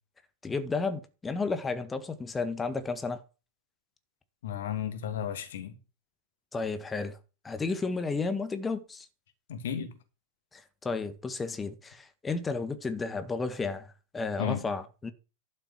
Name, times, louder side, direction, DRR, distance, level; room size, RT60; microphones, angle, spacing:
voice 1, 0.4-3.2 6.5-7.2 7.4-9.1 10.5-15.1, left 4 dB, 15° left, 1.7 m, -32 dB
voice 2, 4.4-5.8 9.5-10.0 14.4-14.6, left 9 dB, 60° left, 2.6 m, -33 dB
12.0 x 6.6 x 6.0 m
figure-of-eight pair, 90°, 0 cm